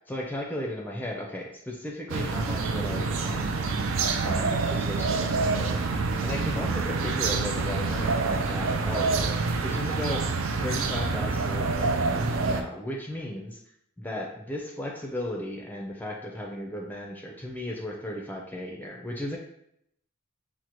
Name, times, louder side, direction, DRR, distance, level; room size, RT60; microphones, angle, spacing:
voice 1, 0.1-3.7 4.2-5.9 6.2-9.3 9.6-10.3 10.6-13.6 14.0-19.4, left 1 dB, 10° left, -1 dB, 0.4 m, -35 dB
sound 1, 2.1-12.6, right 4 dB, 65° right, 0.4 m, -27 dB
6.2 x 2.1 x 2.9 m, 0.73 s
head